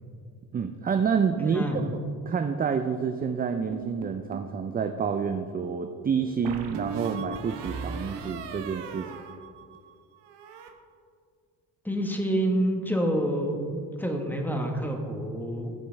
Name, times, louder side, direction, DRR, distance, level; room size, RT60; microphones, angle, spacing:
voice 1, 0.5-1.6 2.3-9.1, right 6 dB, 20° right, 7 dB, 0.4 m, -28 dB
voice 2, 1.3-1.8 11.8-15.7, right 1 dB, 5° left, 2 dB, 1.4 m, -28 dB
sound 1, 3.7-4.6 6.4-9.9 10.2-10.7, right 5 dB, 60° right, 1.0 m, -38 dB
14.5 x 5.0 x 3.5 m, 2.2 s
supercardioid pair, 60°, 47 cm